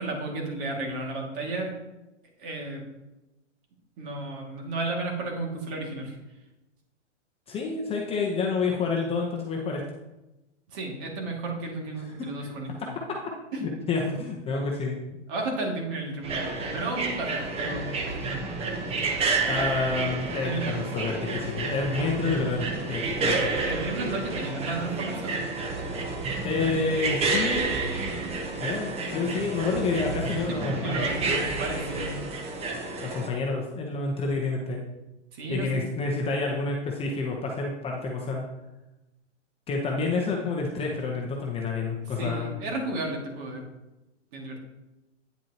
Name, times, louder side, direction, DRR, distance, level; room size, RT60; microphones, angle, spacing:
voice 1, 0.0-1.7 2.4-2.8 4.0-6.2 10.7-12.9 13.5-13.6 15.3-18.4 20.4-20.7 23.6-25.5 26.5-26.7 30.5-32.3 35.3-35.8 42.2-43.6 44.3-44.6, right 2 dB, 45° right, 0 dB, 2.3 m, -33 dB
voice 2, 7.5-9.8 12.4-12.5 13.6-15.0 19.5-23.6 26.4-27.7 28.6-31.1 33.0-34.8 35.5-38.4 39.7-42.6, left 4 dB, 15° left, -1 dB, 0.8 m, -29 dB
sound 1, 16.2-33.3, right 3 dB, 15° right, 0.8 m, -30 dB
9.2 x 7.5 x 2.9 m, 1.0 s
hypercardioid pair, 130°, 37 cm